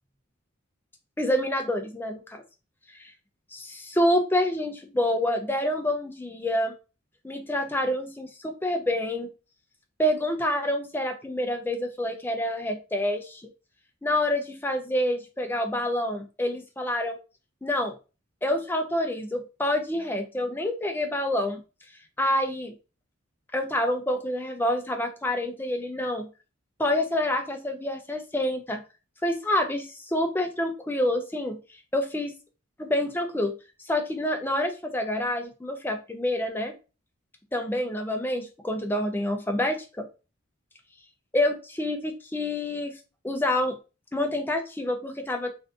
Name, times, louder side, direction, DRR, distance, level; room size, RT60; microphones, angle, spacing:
voice 1, 1.2-2.4 3.0-3.1 3.5-6.7 7.2-9.3 10.0-13.5 14.0-17.2 17.6-17.9 18.4-21.6 22.2-22.7 23.5-26.3 26.8-28.8 29.2-31.6 31.9-32.3 32.8-33.5 33.8-36.7 37.5-40.1 41.3-43.0 43.2-43.7 44.1-45.5, left 1 dB, 10° left, 4 dB, 0.4 m, -27 dB
2.6 x 2.5 x 3.4 m, 0.31 s
head